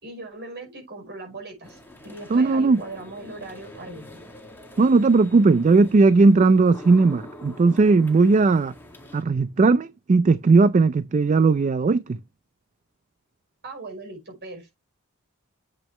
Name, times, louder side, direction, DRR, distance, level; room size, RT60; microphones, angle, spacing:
voice 1, 0.0-4.3 13.6-14.7, right 2 dB, 50° right, 5.2 m, -39 dB
sound 1, 1.6-9.2, equal, 10° left, 2.0 m, -45 dB
voice 2, 2.3-2.8 4.8-8.7 9.1-12.2, right 3 dB, 35° right, 0.3 m, -17 dB
8.3 x 5.9 x 3.2 m
head